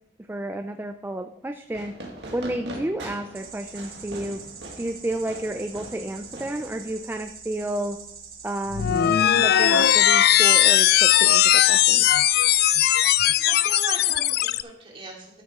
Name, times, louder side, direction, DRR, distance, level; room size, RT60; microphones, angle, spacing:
voice 1, 0.3-1.9 2.3-4.4 4.8-8.0 8.4-12.2, right 1 dB, 10° right, 7 dB, 0.4 m, -31 dB
Fireworks, 1.7-7.2, right 1 dB, 70° right, 2.0 m, -41 dB
sound 1, 3.3-13.5, right 6 dB, 55° right, 1.5 m, -44 dB
sound 2, 8.7-14.6, left 12 dB, 60° left, 0.3 m, -18 dB
voice 2, 13.4-15.4, right 2 dB, 30° right, -2 dB, 2.7 m, -39 dB
13.0 x 7.0 x 3.7 m, 0.77 s
head